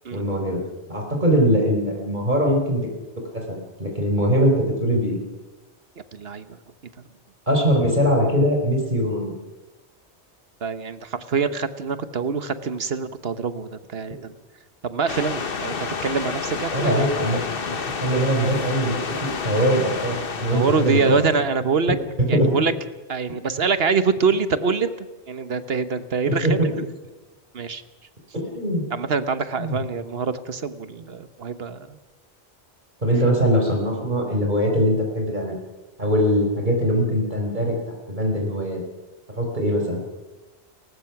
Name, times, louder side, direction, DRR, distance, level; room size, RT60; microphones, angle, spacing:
voice 1, 0.1-0.6 0.9-2.8 3.3-5.2 7.5-9.3 16.7-17.4 18.0-21.0 22.2-22.5 26.3-26.7 28.3-28.8 29.6-29.8 33.0-35.6 36.0-37.7 38.1-38.8 39.3-40.0, equal, 40° right, 1 dB, 4.4 m, -21 dB
voice 2, 6.1-6.6 10.6-14.3 14.8-17.2 20.5-22.0 22.3-22.7 23.1-26.9 27.5-27.8 28.9-32.0, right 5 dB, 60° right, 12 dB, 1.3 m, -25 dB
sound 1, 15.1-21.4, left 5 dB, 55° left, 1.4 m, -30 dB
30.0 x 15.5 x 5.9 m, 1.1 s
omnidirectional pair, 1.2 m